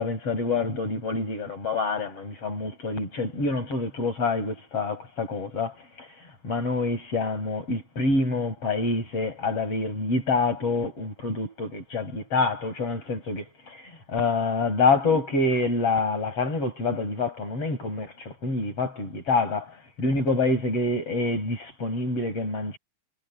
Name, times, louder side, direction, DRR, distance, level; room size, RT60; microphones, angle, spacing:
voice 1, 0.0-5.7 6.0-6.1 6.4-13.8 14.1-19.6 20.0-22.8, left 3 dB, 30° left, 6.7 m, -26 dB
omnidirectional pair, 5.3 m